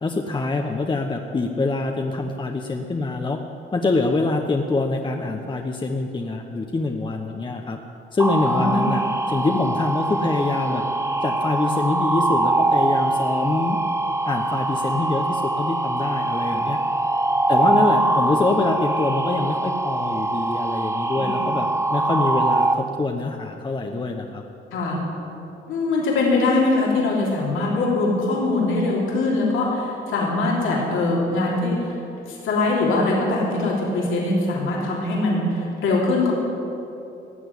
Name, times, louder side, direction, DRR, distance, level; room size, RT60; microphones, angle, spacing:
voice 1, 0.0-3.4 3.7-7.8 8.1-10.8 11.2-13.8 14.2-16.8 17.5-24.4, left 3 dB, 25° left, 3 dB, 1.0 m, -25 dB
sound 1, 8.2-22.7, right 2 dB, 15° right, 0.7 m, -23 dB
voice 2, 8.5-8.8 13.6-13.7 16.5-16.6 17.5-17.8 21.2-21.5 24.7-25.0 25.7-32.0 32.3-36.3, left 2 dB, 80° left, -3 dB, 3.3 m, -22 dB
15.5 x 7.7 x 9.8 m, 2.9 s
cardioid pair, 90°, 20 cm